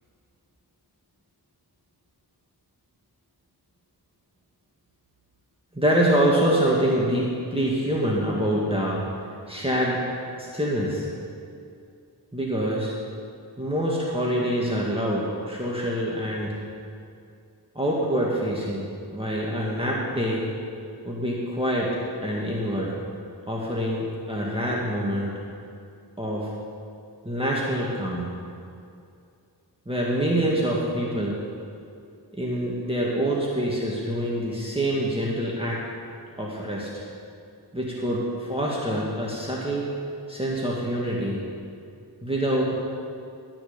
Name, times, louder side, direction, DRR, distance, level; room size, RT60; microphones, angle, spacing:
voice 1, 5.7-9.0 9.5-10.0 10.4-11.1 12.3-12.9 13.6-16.6 17.8-20.5 21.0-23.0 23.5-25.4 26.2-26.5 27.2-28.4 29.9-31.4 32.3-35.8 36.4-37.0 37.7-39.9 40.3-41.4 42.2-42.8, equal, 15° right, -5 dB, 1.9 m, -25 dB
12.5 x 6.0 x 8.7 m, 2.5 s
wide cardioid pair, 50°, 41 cm